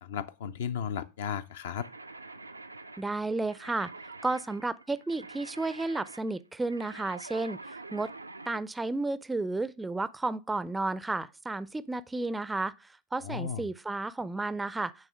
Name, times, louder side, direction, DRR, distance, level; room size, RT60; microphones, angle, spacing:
voice 1, 0.0-1.9 13.2-13.7, left 7 dB, 60° left, 0.6 m, -35 dB
sound 1, 1.8-8.7, right 3 dB, 85° right, 0.4 m, -46 dB
voice 2, 3.0-3.9 4.2-8.1 8.5-15.1, right 2 dB, 10° right, 0.4 m, -32 dB
9.0 x 3.6 x 5.6 m
figure-of-eight pair, 90°, 0 cm